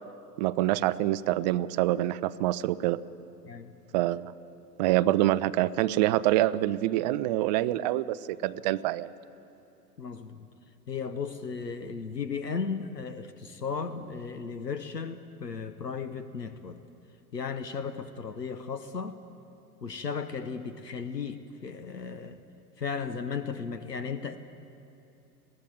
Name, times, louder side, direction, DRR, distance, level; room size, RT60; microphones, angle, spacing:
voice 1, 0.4-3.0 3.9-4.3 4.8-9.1, right 15 dB, 30° right, 15 dB, 0.4 m, -26 dB
voice 2, 10.0-10.5 10.9-16.8 17.3-19.2 19.8-22.4 22.8-24.4, left 5 dB, 85° left, 11 dB, 1.0 m, -35 dB
21.5 x 15.5 x 9.4 m, 2.8 s
figure-of-eight pair, 95°, 48 cm